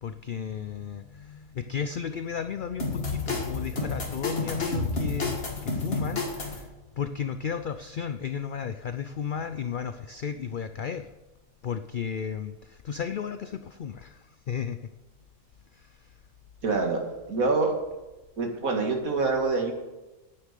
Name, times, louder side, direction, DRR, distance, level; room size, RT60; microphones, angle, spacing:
voice 1, 0.0-11.1 11.6-14.8 15.7-16.2, left 7 dB, 70° left, 10 dB, 0.4 m, -34 dB
sound 1, 2.8-6.6, left 3 dB, 45° left, 2.2 m, -30 dB
voice 2, 16.6-17.7 18.4-19.7, right 3 dB, 75° right, 3 dB, 2.2 m, -26 dB
9.7 x 8.9 x 6.6 m, 1.1 s
omnidirectional pair, 1.5 m